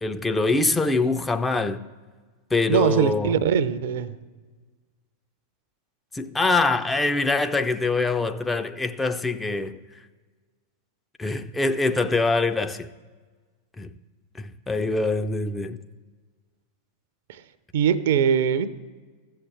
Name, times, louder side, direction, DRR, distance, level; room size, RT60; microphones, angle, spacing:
voice 1, 0.0-1.8 2.5-3.4 6.1-9.8 11.2-12.9 13.8-13.9 14.4-15.8, left 3 dB, 10° left, 0.4 m, -24 dB
voice 2, 2.7-4.2 17.3-17.4 17.7-18.7, right 8 dB, 55° right, 0.5 m, -22 dB
15.0 x 5.6 x 3.4 m
figure-of-eight pair, 90°, 0 cm